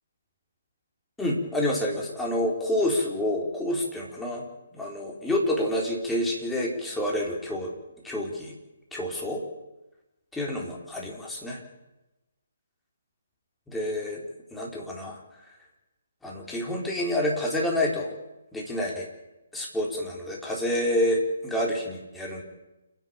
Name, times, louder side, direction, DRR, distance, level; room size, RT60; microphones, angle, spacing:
voice 1, 1.2-4.4 4.7-7.7 8.0-8.5 8.9-9.4 10.3-11.6 13.7-14.2 14.5-15.2 16.2-18.1 18.5-19.1 19.5-22.4, left 1 dB, 5° left, -3 dB, 4.3 m, -28 dB
29.0 x 10.5 x 9.0 m, 1.0 s
figure-of-eight pair, 140°, 0 cm